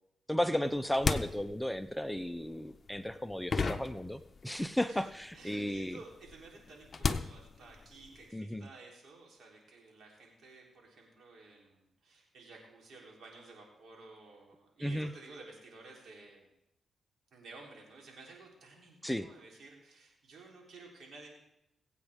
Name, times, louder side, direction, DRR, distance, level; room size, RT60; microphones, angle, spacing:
voice 1, 0.3-6.0 8.3-8.7 14.8-15.1 19.0-19.3, left 1 dB, 5° left, 11 dB, 0.6 m, -34 dB
sound 1, 0.6-4.7 5.0-8.2, left 4 dB, 45° left, 0.7 m, -36 dB
voice 2, 5.3-16.5 17.3-21.3, right 3 dB, 75° right, -1 dB, 3.6 m, -54 dB
21.5 x 8.2 x 3.6 m, 0.82 s
cardioid pair, 70°, 0 cm